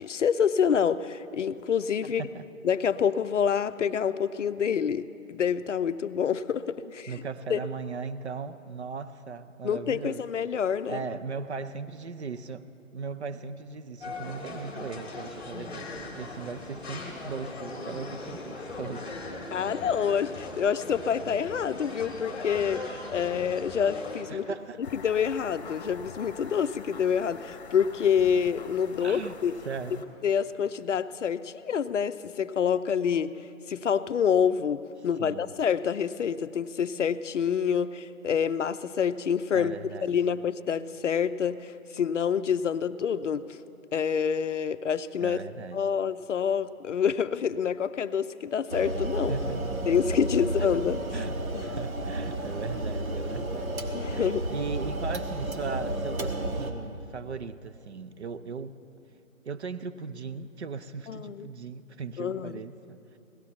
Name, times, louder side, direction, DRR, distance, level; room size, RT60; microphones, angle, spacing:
voice 1, 0.0-2.2 2.6-7.1 7.5-7.6 9.6-11.0 19.5-24.4 24.9-29.6 30.2-33.3 33.7-39.8 40.0-43.4 43.9-45.4 45.7-49.3 49.9-51.0 51.5-51.6 53.9-54.5 61.1-61.5 62.2-62.6, left 7 dB, 60° left, 13 dB, 0.5 m, -27 dB
voice 2, 2.0-2.5 7.1-10.3 10.8-12.7 12.9-19.2 24.3-24.8 29.0-29.4 29.6-30.1 35.2-35.5 39.5-40.2 45.2-45.9 49.3-49.7 51.1-53.8 54.1-58.8 59.4-63.2, right 5 dB, 55° right, 12 dB, 0.5 m, -38 dB
sound 1, 14.0-24.2, left 2 dB, ahead, 0.9 m, -39 dB
sound 2, 24.8-30.0, left 4 dB, 30° left, 0.9 m, -45 dB
sound 3, 48.7-56.7, right 1 dB, 80° right, 1.4 m, -32 dB
17.5 x 13.0 x 4.3 m, 2.7 s
figure-of-eight pair, 155°, 41 cm